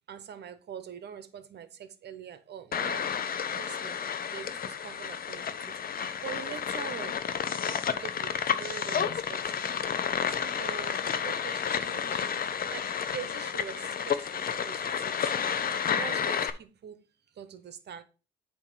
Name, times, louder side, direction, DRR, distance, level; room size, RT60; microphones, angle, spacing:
voice 1, 0.1-3.1 3.5-4.0 4.3-7.2 7.9-9.7 10.2-15.3 15.8-17.0 17.3-18.0, right 8 dB, 60° right, 1.0 m, -44 dB
sound 1, 2.7-16.5, left 7 dB, 45° left, 0.7 m, -31 dB
8.4 x 3.0 x 5.7 m
cardioid pair, 90°, 20 cm